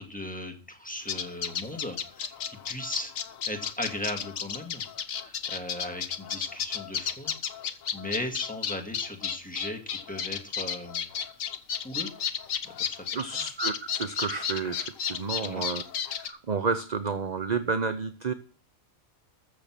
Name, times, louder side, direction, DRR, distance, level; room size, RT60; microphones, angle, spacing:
voice 1, 0.0-3.1 3.5-4.8 5.2-7.3 7.9-11.1 11.8-12.1 12.8-13.0 13.3-13.5 15.4-15.6, left 1 dB, 5° left, 2 dB, 2.0 m, -37 dB
sound 1, 1.1-16.3, left 8 dB, 75° left, 1.4 m, -33 dB
voice 2, 13.1-15.8 16.2-18.3, right 5 dB, 40° right, 11 dB, 0.8 m, -30 dB
14.0 x 6.9 x 6.0 m, 0.42 s
omnidirectional pair, 1.4 m